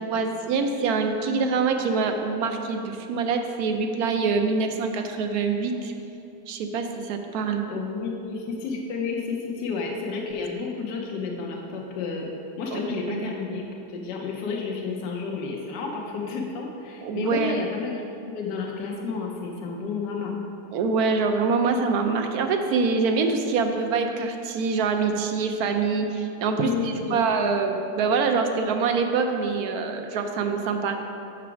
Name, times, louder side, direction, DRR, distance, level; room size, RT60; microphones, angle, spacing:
voice 1, 0.1-5.9 6.5-7.6 12.7-12.8 13.1-13.3 17.0-17.6 20.7-31.0, right 4 dB, 70° right, 5 dB, 1.0 m, -25 dB
voice 2, 7.7-12.3 12.6-18.0 18.3-20.3 26.5-27.2, left 4 dB, 80° left, -1 dB, 1.3 m, -31 dB
5.9 x 4.8 x 5.9 m, 2.8 s
omnidirectional pair, 1.8 m